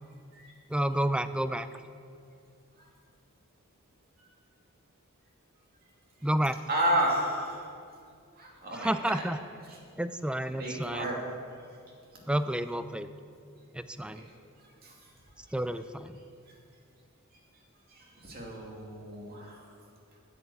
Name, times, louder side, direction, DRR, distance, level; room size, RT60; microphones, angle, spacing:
voice 1, 0.7-1.7 6.2-6.5 8.7-9.4 10.0-11.1 12.3-13.1 13.7-14.2 15.5-16.2, right 1 dB, 5° right, 12 dB, 0.3 m, -30 dB
voice 2, 6.7-7.6 8.4-9.1 9.7-9.8 10.6-11.2 14.1-14.2 14.8-14.9 17.9-19.6, right 1 dB, 45° right, -2 dB, 2.5 m, -32 dB
9.6 x 8.0 x 8.5 m, 2.3 s
head